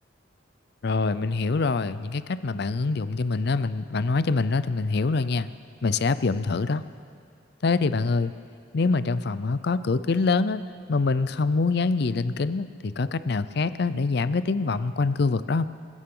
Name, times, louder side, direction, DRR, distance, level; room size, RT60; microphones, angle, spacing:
voice 1, 0.8-5.5 5.8-6.8 7.6-8.3 8.7-10.6 10.9-15.7, left 3 dB, 60° left, 14 dB, 0.5 m, -25 dB
26.0 x 14.5 x 3.8 m, 2.2 s
head